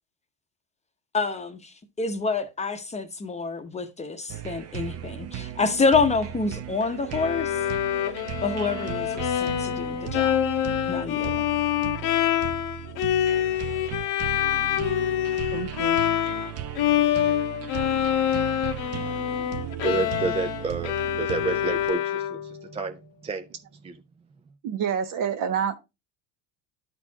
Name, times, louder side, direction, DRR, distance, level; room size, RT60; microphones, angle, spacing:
voice 1, 1.1-7.6 8.4-10.4 10.9-11.4, left 4 dB, 15° left, 0.8 m, -27 dB
sound 1, 4.3-21.9, right 11 dB, 40° right, 0.8 m, -36 dB
Bowed string instrument, 7.1-16.5 16.8-22.6, left 11 dB, 55° left, 0.9 m, -26 dB
voice 2, 15.5-16.0 24.6-25.8, right 7 dB, 55° right, 1.4 m, -28 dB
voice 3, 19.8-23.5 23.8-24.0, right 4 dB, 15° right, 0.3 m, -30 dB
12.0 x 4.3 x 2.8 m
supercardioid pair, 120°, 38 cm